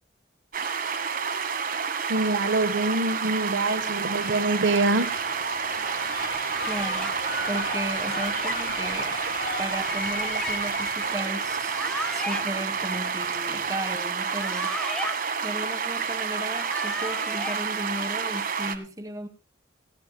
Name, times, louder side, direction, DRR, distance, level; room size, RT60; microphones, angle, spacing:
sound 1, 0.5-18.8, right 6 dB, 50° right, 1.5 m, -29 dB
voice 1, 2.1-5.1, right 2 dB, 80° right, 9 dB, 1.4 m, -25 dB
sound 2, 3.8-13.8, left 3 dB, 50° left, 2.0 m, -37 dB
sound 3, 6.5-7.2 8.0-8.6 9.7-10.5 11.6-12.4 14.1-15.2 16.3-17.6, equal, 5° left, 1.5 m, -36 dB
voice 2, 6.7-9.2 9.6-14.8 15.4-19.3, right 1 dB, 20° right, 8 dB, 1.7 m, -35 dB
18.5 x 15.5 x 2.3 m, 0.35 s
head